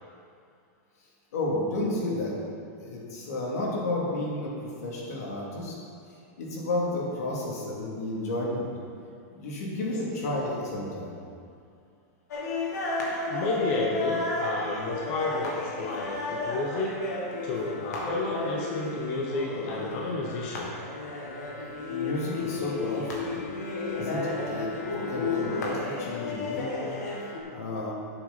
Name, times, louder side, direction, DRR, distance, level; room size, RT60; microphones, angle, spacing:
voice 1, 1.3-2.3 2.8-5.7 6.4-8.7 9.3-11.1 21.9-23.3 23.9-24.7 25.1-26.9 27.2-27.9, left 2 dB, 65° left, -4 dB, 2.7 m, -32 dB
sound 1, 12.3-27.4, left 3 dB, 85° left, 2.2 m, -33 dB
voice 2, 13.3-17.0 17.4-20.7, left 3 dB, 35° left, -3 dB, 1.0 m, -31 dB
11.5 x 7.7 x 4.1 m, 2.3 s
supercardioid pair, 180°, 9 cm